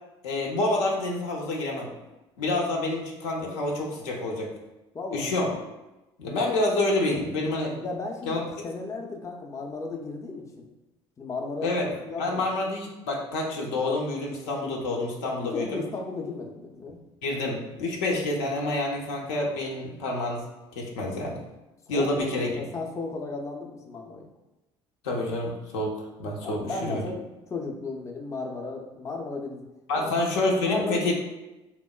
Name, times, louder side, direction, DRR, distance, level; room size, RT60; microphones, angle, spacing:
voice 1, 0.2-1.9 2.4-4.5 5.1-5.5 6.2-7.8 8.3-8.4 11.6-11.9 12.2-15.8 17.2-20.4 20.8-21.4 21.9-22.5 25.0-27.0 29.9-31.1, left 2 dB, 80° left, -1 dB, 0.5 m, -28 dB
voice 2, 4.9-5.3 7.8-10.7 11.2-12.5 15.5-17.0 21.9-22.3 22.5-24.3 26.4-27.2 27.5-29.7 29.9-30.2 30.6-31.1, left 3 dB, 20° left, 1 dB, 0.4 m, -35 dB
2.9 x 2.0 x 2.2 m, 1.0 s
hypercardioid pair, 65°, 14 cm